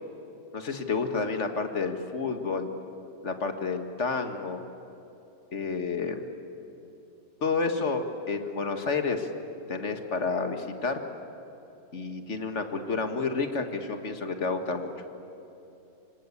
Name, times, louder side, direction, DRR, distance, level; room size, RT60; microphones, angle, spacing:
voice 1, 0.5-2.7 3.2-4.6 5.5-6.3 7.4-9.3 9.7-11.0 11.9-14.9, left 4 dB, 45° left, 6 dB, 1.9 m, -30 dB
26.5 x 25.5 x 8.5 m, 2.9 s
omnidirectional pair, 1.8 m